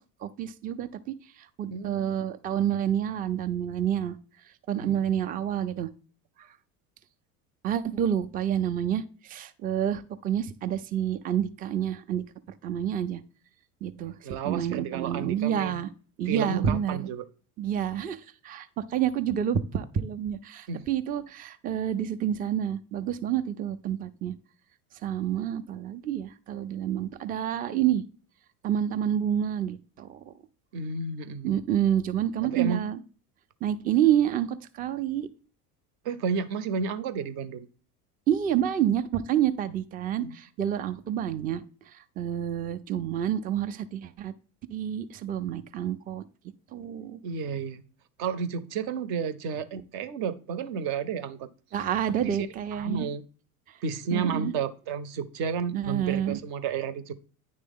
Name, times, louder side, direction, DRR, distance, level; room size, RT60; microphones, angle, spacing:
voice 1, 0.2-0.9 1.6-4.2 4.7-5.9 7.6-12.2 12.6-13.2 13.8-14.2 14.4-15.9 16.2-17.1 17.6-24.3 25.0-28.0 28.6-30.3 31.4-33.0 33.6-35.3 38.3-41.6 42.2-44.3 44.7-46.2 46.7-47.2 51.7-53.1 54.1-54.5 55.7-56.4, right 10 dB, 20° right, 0.4 m, -28 dB
voice 2, 1.7-2.1 4.8-5.2 14.2-15.8 16.3-17.2 20.7-20.8 30.7-31.6 32.5-32.9 36.0-37.7 40.2-40.4 47.2-47.8 48.2-51.5 52.1-53.2 53.8-57.1, right 6 dB, 55° right, 0.8 m, -32 dB
9.4 x 3.3 x 3.6 m
hypercardioid pair, 80°, 46 cm